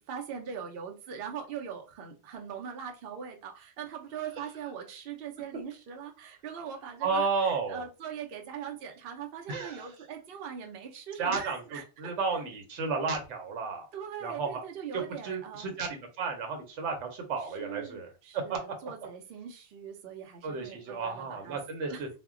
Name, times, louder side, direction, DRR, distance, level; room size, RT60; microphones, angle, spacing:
voice 1, 0.1-12.1 13.9-15.7 17.4-22.0, right 8 dB, 65° right, 2 dB, 0.7 m, -41 dB
voice 2, 7.0-7.9 9.5-9.9 11.2-13.9 14.2-14.6 14.9-18.6 20.4-22.1, right 4 dB, 90° right, 4 dB, 0.9 m, -33 dB
2.2 x 2.1 x 3.5 m, 0.32 s
omnidirectional pair, 1.2 m